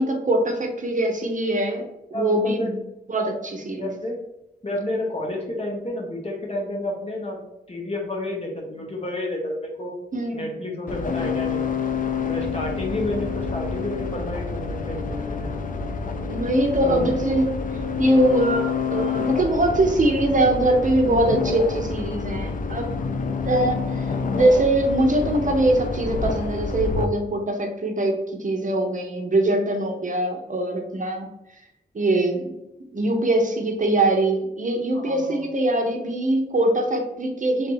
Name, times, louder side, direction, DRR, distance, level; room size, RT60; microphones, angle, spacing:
voice 1, 0.0-1.9 2.1-2.8 3.1-3.9 10.1-10.4 16.3-17.5 18.0-23.0 23.4-24.1 24.3-31.3 31.9-32.5 32.9-37.7, right 1 dB, 50° right, 2 dB, 0.8 m, -22 dB
voice 2, 2.1-2.7 3.8-4.2 4.6-7.4 7.7-9.9 10.3-11.8 12.3-15.6 16.8-17.1 34.9-35.4, left 1 dB, 35° left, -1 dB, 1.2 m, -30 dB
sound 1, 10.9-27.0, left 5 dB, 55° left, 0.4 m, -28 dB
3.4 x 2.7 x 4.6 m, 0.87 s
wide cardioid pair, 90°, 17 cm